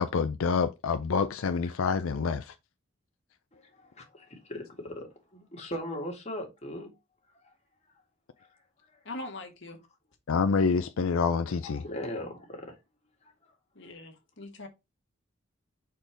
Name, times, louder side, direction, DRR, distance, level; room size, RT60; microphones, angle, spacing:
voice 1, 0.0-2.6 10.3-11.8, left 5 dB, 80° left, 0.5 m, -27 dB
voice 2, 3.5-6.9 7.4-7.5 8.4-8.5 8.8-9.0 11.6-12.7 13.2-13.5, left 1 dB, 35° left, 1.9 m, -39 dB
voice 3, 9.0-9.8 13.7-14.7, left 2 dB, 60° left, 1.7 m, -41 dB
5.2 x 4.4 x 4.5 m
head